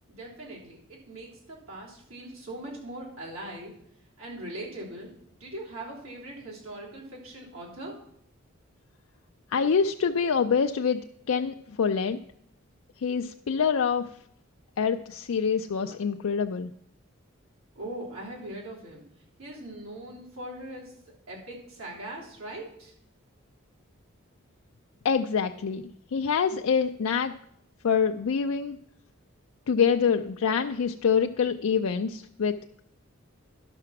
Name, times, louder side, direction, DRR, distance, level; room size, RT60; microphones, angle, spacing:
voice 1, 0.1-3.8 4.2-5.1 5.4-8.0 17.8-19.0 19.4-20.9 21.3-22.9, right 1 dB, 85° right, -4 dB, 3.6 m, -40 dB
voice 2, 9.5-11.0 11.3-12.2 13.0-14.1 14.8-16.7 25.0-25.8 26.1-27.3 27.8-28.8 29.7-32.5, left 6 dB, 75° left, 5 dB, 0.4 m, -25 dB
11.5 x 5.8 x 5.9 m, 0.70 s
head